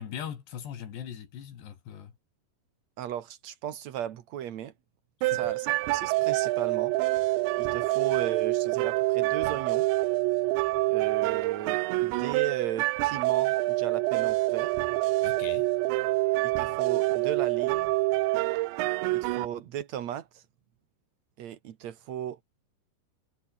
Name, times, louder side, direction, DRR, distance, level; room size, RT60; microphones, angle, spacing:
voice 1, 0.0-2.1 5.2-5.5 15.2-15.7, left 9 dB, 70° left, 4.9 m, -40 dB
voice 2, 3.0-4.7 5.2-7.0 7.6-9.9 10.9-14.7 16.4-17.9 19.1-20.4 21.4-22.4, right 10 dB, 65° right, 1.7 m, -36 dB
sound 1, 5.2-19.5, right 20 dB, 85° right, 3.0 m, -26 dB
omnidirectional pair, 5.1 m